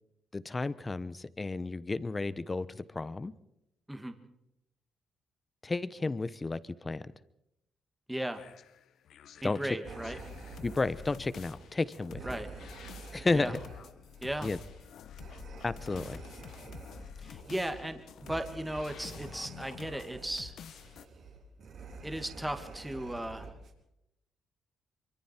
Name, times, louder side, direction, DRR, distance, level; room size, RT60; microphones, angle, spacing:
voice 1, 0.3-3.3 5.6-7.0 9.4-9.8 10.6-12.2 13.1-13.6 14.4-14.6 15.6-16.2, left 3 dB, 25° left, 16 dB, 1.0 m, -32 dB
voice 2, 8.1-8.4 9.4-10.2 12.2-12.5 13.3-13.5 14.2-14.5 17.2-20.5 22.0-23.5, right 1 dB, 5° right, 7 dB, 2.0 m, -36 dB
sound 1, 8.3-21.1, left 8 dB, 70° left, 1.1 m, -49 dB
sound 2, 9.8-23.7, right 3 dB, 65° right, 4.3 m, -48 dB
24.5 x 24.0 x 4.5 m, 0.83 s
cardioid pair, 90°, 0 cm